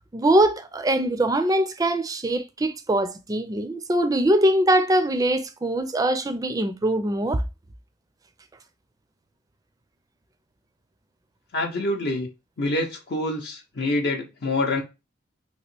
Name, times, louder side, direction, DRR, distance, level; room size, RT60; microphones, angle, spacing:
voice 1, 0.1-7.4, right 1 dB, 20° right, 0.4 m, -22 dB
voice 2, 11.5-12.3 12.6-14.8, left 2 dB, 60° left, 0.6 m, -26 dB
3.0 x 2.8 x 3.0 m
head